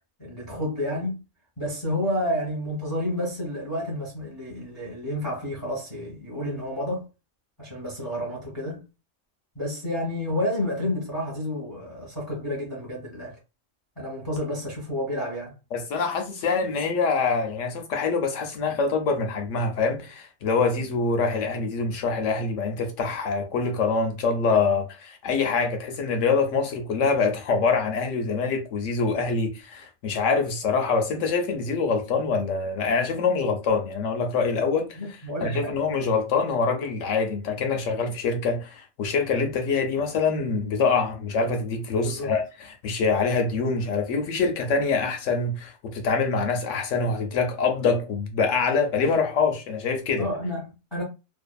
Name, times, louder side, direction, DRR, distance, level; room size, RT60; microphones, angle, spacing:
voice 1, 0.2-1.1 1.6-7.1 7.6-8.8 9.5-13.4 14.0-15.5 35.0-35.7 42.0-42.3 50.2-51.0, left 1 dB, 15° left, 0.9 m, -30 dB
voice 2, 15.7-50.3, left 4 dB, 70° left, 0.9 m, -25 dB
2.5 x 2.5 x 2.3 m
omnidirectional pair, 1.4 m